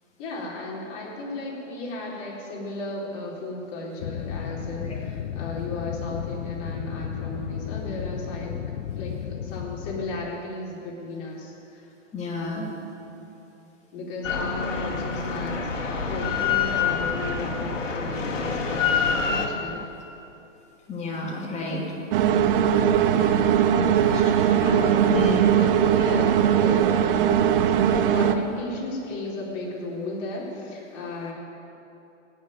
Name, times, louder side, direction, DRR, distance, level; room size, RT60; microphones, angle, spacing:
voice 1, 0.2-8.6 8.9-11.9 13.9-19.8 23.4-27.0 27.8-31.3, left 2 dB, 40° left, -4 dB, 4.1 m, -35 dB
sound 1, 4.0-10.3, left 9 dB, 70° left, 0.7 m, -33 dB
voice 2, 12.1-12.7 20.9-21.9 24.0-24.5 25.1-25.4 26.0-26.1, left 1 dB, 20° left, -3 dB, 2.6 m, -31 dB
Drill, 14.2-19.5, left 6 dB, 90° left, 2.0 m, -26 dB
sound 2, 22.1-28.3, right 9 dB, 45° right, 0.9 m, -20 dB
16.5 x 6.8 x 9.0 m, 2.8 s
hypercardioid pair, 130°, 37 cm